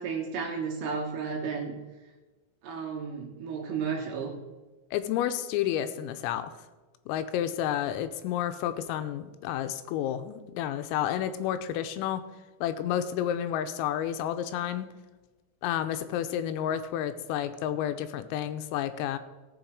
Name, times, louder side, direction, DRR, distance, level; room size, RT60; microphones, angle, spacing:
voice 1, 0.0-1.7 2.6-4.3, right 5 dB, 65° right, -1 dB, 3.2 m, -33 dB
voice 2, 4.9-6.5 7.1-12.3 12.6-14.9 15.6-19.2, left 10 dB, 90° left, 10 dB, 3.3 m, -30 dB
16.5 x 7.2 x 4.6 m, 1.2 s
omnidirectional pair, 6.0 m